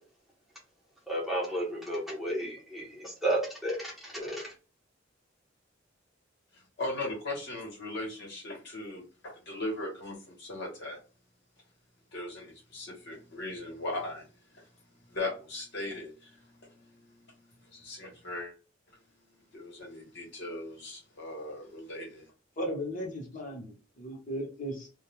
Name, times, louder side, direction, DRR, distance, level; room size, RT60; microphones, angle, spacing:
voice 1, 1.1-4.5, right 1 dB, ahead, 0.7 m, -32 dB
voice 2, 6.5-11.0 12.1-14.3 14.5-18.5 18.9-19.0 19.5-22.3, left 2 dB, 60° left, 1.0 m, -39 dB
voice 3, 22.6-24.9, equal, 40° left, 0.9 m, -36 dB
2.2 x 2.2 x 3.0 m
head